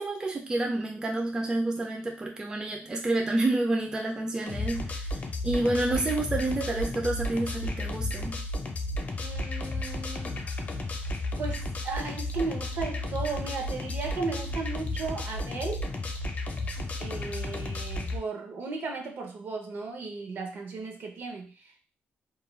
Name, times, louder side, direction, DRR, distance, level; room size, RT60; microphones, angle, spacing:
voice 1, 0.0-8.4, right 2 dB, 20° right, 1 dB, 0.3 m, -29 dB
sound 1, 4.5-18.2, left 2 dB, 40° left, 0.5 m, -33 dB
voice 2, 9.2-10.4 11.4-15.9 16.8-21.8, right 4 dB, 60° right, 3 dB, 0.6 m, -36 dB
2.4 x 2.1 x 3.1 m, 0.37 s
cardioid pair, 125°, 4 cm